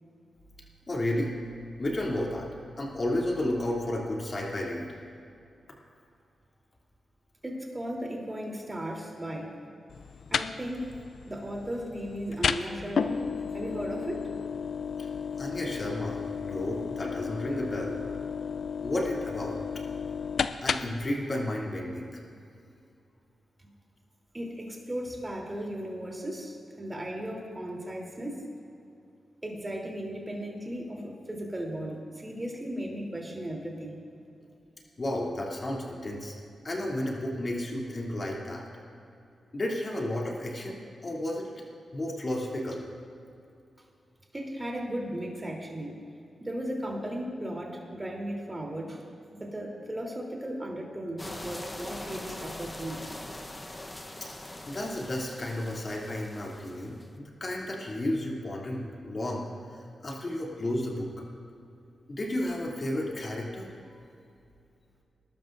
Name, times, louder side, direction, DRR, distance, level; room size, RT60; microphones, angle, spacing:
voice 1, 0.9-1.3 1.8-2.5 2.8-4.9 15.0-15.1 15.4-18.0 18.8-19.6 20.6-22.2 35.0-36.3 36.6-38.6 39.5-41.5 41.9-42.8 54.7-59.4 60.0-61.1 62.1-63.7, left 1 dB, 45° left, -3 dB, 2.9 m, -32 dB
voice 2, 7.4-9.5 10.3-11.0 11.3-13.2 13.5-14.3 24.3-28.4 29.4-34.0 44.3-46.0 46.4-49.0 49.3-53.0, equal, 25° right, 0 dB, 3.4 m, -36 dB
sound 1, 9.9-21.1, left 6 dB, 75° left, 0.4 m, -33 dB
sound 2, 51.2-57.1, left 1 dB, 25° left, 1.0 m, -42 dB
20.5 x 12.5 x 2.6 m, 2.6 s
cardioid pair, 50°, 0 cm